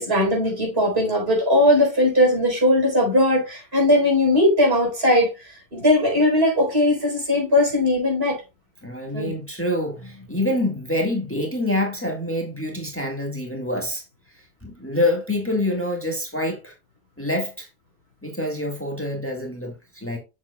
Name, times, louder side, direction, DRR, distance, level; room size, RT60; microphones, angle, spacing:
voice 1, 0.0-5.3 5.7-8.4 9.1-9.3, left 1 dB, 70° right, 4.5 m, -19 dB
voice 2, 8.8-14.0 14.6-16.7 17.2-17.7 18.2-20.2, left 1 dB, 10° left, 1.7 m, -26 dB
7.4 x 7.2 x 2.3 m
omnidirectional pair, 1.1 m